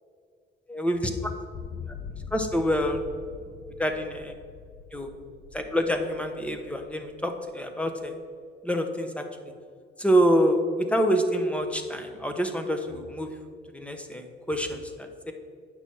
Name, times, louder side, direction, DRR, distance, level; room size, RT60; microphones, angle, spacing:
voice 1, 0.7-1.3 2.3-3.0 3.8-4.3 4.9-5.1 5.5-8.2 8.6-9.3 10.0-13.3 13.7-15.3, equal, 5° left, 5 dB, 1.0 m, -26 dB
sound 1, 1.5-7.6, left 6 dB, 55° left, 0.7 m, -43 dB
8.8 x 6.1 x 4.5 m, 2.2 s
cardioid pair, 90°, 20 cm